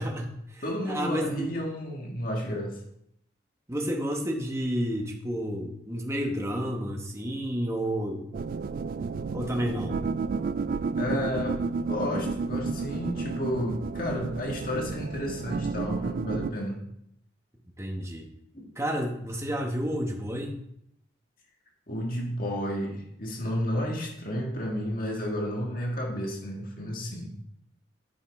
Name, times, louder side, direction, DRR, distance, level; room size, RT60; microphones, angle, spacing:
voice 1, 0.0-1.5 3.7-8.3 9.3-10.1 17.8-18.3 18.7-20.6, equal, 15° right, 1 dB, 1.1 m, -31 dB
voice 2, 0.6-2.8 11.0-11.6 11.9-16.8 18.5-18.7 21.9-27.3, equal, 50° left, 0 dB, 1.6 m, -31 dB
sound 1, 8.3-16.5, right 4 dB, 50° right, 0.3 m, -31 dB
8.8 x 5.6 x 4.8 m, 0.75 s
head